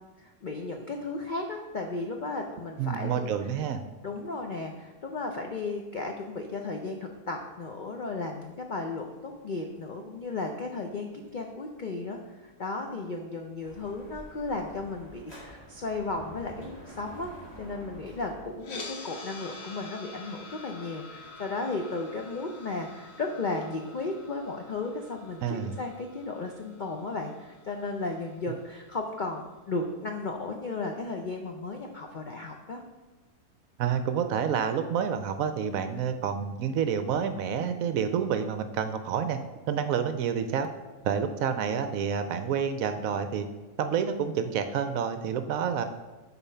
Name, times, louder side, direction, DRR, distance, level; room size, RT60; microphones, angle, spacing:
voice 1, 0.2-3.1 4.0-17.3 17.6-32.8, left 3 dB, 70° left, 3 dB, 0.4 m, -35 dB
voice 2, 2.8-3.8 25.4-25.7 33.8-39.4 39.7-40.7 41.0-43.4 43.8-45.8, right 7 dB, 70° right, 9 dB, 0.9 m, -28 dB
Dog / Motorcycle, 13.6-18.6, right 1 dB, 15° left, 1.8 m, -48 dB
sound 1, 18.6-28.7, left 3 dB, 45° left, 1.2 m, -47 dB
7.1 x 4.4 x 5.6 m, 1.2 s
omnidirectional pair, 1.7 m